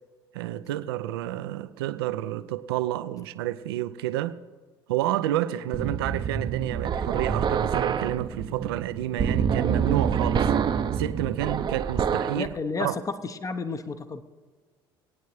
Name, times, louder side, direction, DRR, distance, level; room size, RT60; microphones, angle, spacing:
voice 1, 0.3-4.4 4.9-10.5 10.9-12.5 12.8-13.0, right 13 dB, 75° right, 0.6 m, -30 dB
sound 1, 5.7-12.5, right 7 dB, 35° right, 0.7 m, -26 dB
voice 2, 12.4-14.2, left 4 dB, 25° left, 0.8 m, -32 dB
22.0 x 9.2 x 3.2 m
hypercardioid pair, 65°, 13 cm